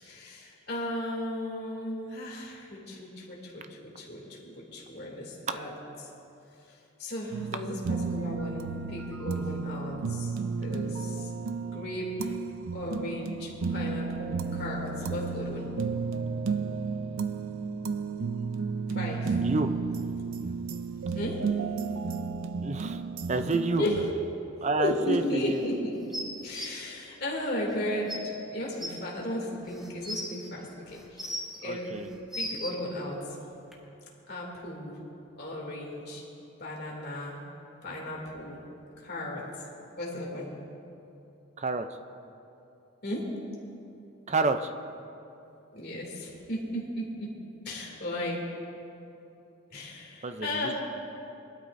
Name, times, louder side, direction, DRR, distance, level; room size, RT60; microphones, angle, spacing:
voice 1, 0.0-5.7 6.0-6.1 6.7-10.4 10.6-11.3 11.7-12.3 12.7-15.7 18.9-19.4 21.1-21.4 23.8-24.0 24.8-26.0 26.4-31.3 31.6-31.9 32.3-33.2 34.3-34.9 35.4-36.2 36.6-37.4 37.8-38.6 39.0-39.5 40.0-40.5 43.0-43.3 45.7-47.4 47.6-48.4 49.7-50.8, left 1 dB, 50° left, -3 dB, 2.6 m, -35 dB
sound 1, 7.3-24.1, right 4 dB, 85° right, 0.5 m, -33 dB
voice 2, 19.4-19.7 22.6-23.0 23.3-23.8 24.6-25.6 31.6-32.1 41.6-41.9 44.3-44.7 50.2-50.8, right 3 dB, 35° right, 8 dB, 0.5 m, -29 dB
sound 2, 26.1-26.7 27.7-27.8 28.1-28.2 28.8-28.9 29.7-30.3 30.9-31.6 32.1-32.7 33.7-33.8, equal, ahead, 1.4 m, -35 dB
21.5 x 12.5 x 2.6 m, 2.8 s
head